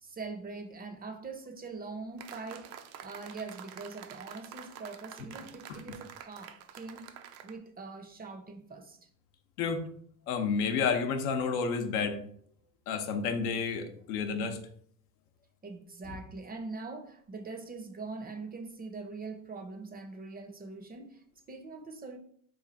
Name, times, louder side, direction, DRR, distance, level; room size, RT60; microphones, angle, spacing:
voice 1, 0.0-7.1 7.4-9.1 15.6-22.2, right 3 dB, 20° right, 0.5 m, -43 dB
sound 1, 2.2-7.6, right 9 dB, 85° right, 0.5 m, -48 dB
voice 2, 10.3-12.2 12.9-14.6, left 5 dB, 85° left, 0.7 m, -30 dB
3.1 x 2.4 x 3.9 m
supercardioid pair, 80°, 43 cm